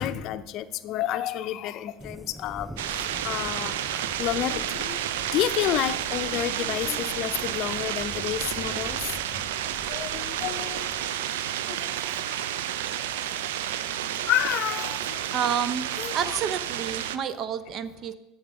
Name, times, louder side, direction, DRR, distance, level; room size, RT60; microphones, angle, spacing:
voice 1, 0.0-5.0 5.3-9.0 9.9-10.9 11.8-11.9 14.3-15.2 16.0-16.1, left 12 dB, 55° left, 13 dB, 0.5 m, -30 dB
sound 1, 2.0-11.1, equal, ahead, 0.5 m, -45 dB
sound 2, 2.0-6.8 7.5-7.8 8.1-16.1 16.4-16.8, equal, 20° right, 3.4 m, -55 dB
sound 3, 2.8-17.2, right 11 dB, 80° right, 0.4 m, -31 dB
voice 2, 15.3-15.9 16.1-18.2, right 8 dB, 50° right, 12 dB, 0.7 m, -29 dB
8.1 x 6.5 x 6.1 m, 1.0 s
hypercardioid pair, 85°, 0 cm